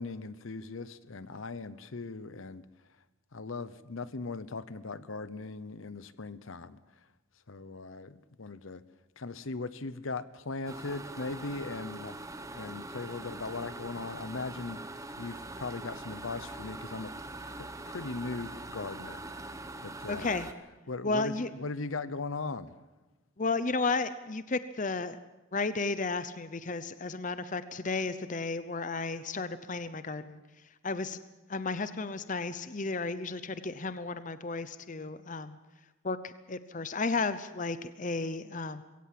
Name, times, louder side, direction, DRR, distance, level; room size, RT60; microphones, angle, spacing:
voice 1, 0.0-2.7 3.3-7.1 7.5-8.8 9.2-12.2 12.5-17.1 17.5-19.2 19.5-20.3 20.9-22.8, left 3 dB, 70° left, 15 dB, 0.8 m, -39 dB
sound 1, 10.7-20.5, right 2 dB, 15° right, 1.0 m, -43 dB
voice 2, 20.1-20.5 21.0-21.5 23.4-25.2 25.5-30.4 30.8-31.2 31.5-35.6 36.0-38.8, left 3 dB, 35° left, 12 dB, 0.7 m, -33 dB
22.0 x 17.0 x 7.6 m, 1.1 s
head